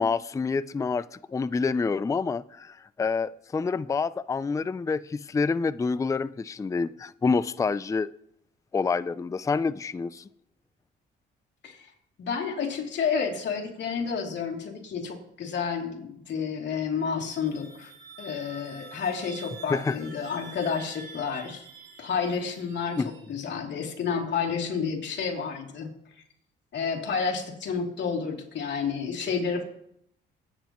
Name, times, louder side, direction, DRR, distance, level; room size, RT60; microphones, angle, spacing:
voice 1, 0.0-8.1 8.7-10.3 19.7-20.0 23.0-23.1, left 4 dB, 15° left, 0.4 m, -27 dB
voice 2, 12.2-21.7 22.0-25.9 26.7-29.6, left 6 dB, 65° left, 2.9 m, -30 dB
sound 1, 17.1-23.7, right 4 dB, 65° right, 4.0 m, -48 dB
23.5 x 9.3 x 3.1 m
cardioid pair, 90°, 20 cm